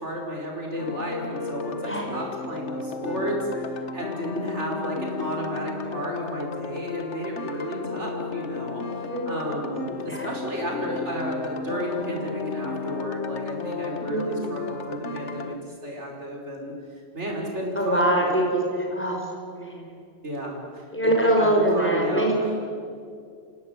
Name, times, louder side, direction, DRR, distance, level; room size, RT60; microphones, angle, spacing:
voice 1, 0.0-3.4 3.7-8.8 9.3-16.7 17.1-18.3 20.2-22.6, equal, 90° right, -1 dB, 5.5 m, -32 dB
sound 1, 0.8-15.6, left 4 dB, 85° left, 1.6 m, -33 dB
voice 2, 1.8-2.2 7.8-7.9 9.0-9.2 10.1-10.3 13.9-14.5 17.8-19.3 19.6-19.8 20.9-22.4, right 1 dB, 10° left, 0 dB, 5.6 m, -24 dB
29.5 x 16.5 x 9.7 m, 2.3 s
omnidirectional pair, 1.2 m